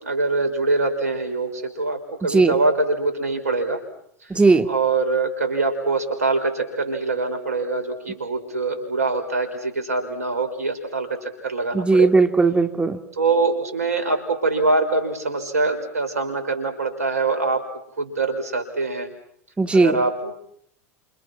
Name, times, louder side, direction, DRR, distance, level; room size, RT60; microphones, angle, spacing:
voice 1, 0.0-3.8 4.7-12.1 13.1-17.7 18.0-19.1 19.7-20.3, right 3 dB, 90° right, 7 dB, 5.5 m, -24 dB
voice 2, 4.3-4.7 11.7-13.0 19.6-20.0, right 3 dB, 15° right, 7 dB, 2.8 m, -17 dB
29.5 x 28.5 x 6.1 m, 0.69 s
hypercardioid pair, 90°, 8 cm